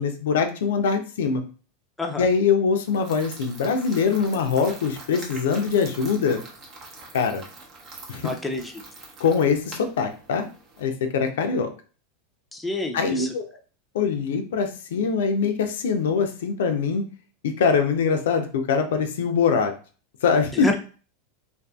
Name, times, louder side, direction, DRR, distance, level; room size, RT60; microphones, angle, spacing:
voice 1, 0.0-1.4 2.2-6.4 7.1-7.4 8.1-8.3 9.2-10.4 10.8-11.7 12.9-13.4 13.9-17.0 17.4-19.7 20.2-20.8, left 5 dB, 80° left, 6 dB, 0.4 m, -23 dB
sound 1, 2.9-10.8, right 3 dB, 45° right, 0.8 m, -44 dB
voice 2, 8.2-8.7 12.5-13.3 20.5-20.8, left 2 dB, 5° left, 2 dB, 0.5 m, -28 dB
2.5 x 2.5 x 2.2 m, 0.38 s
hypercardioid pair, 105°, 0 cm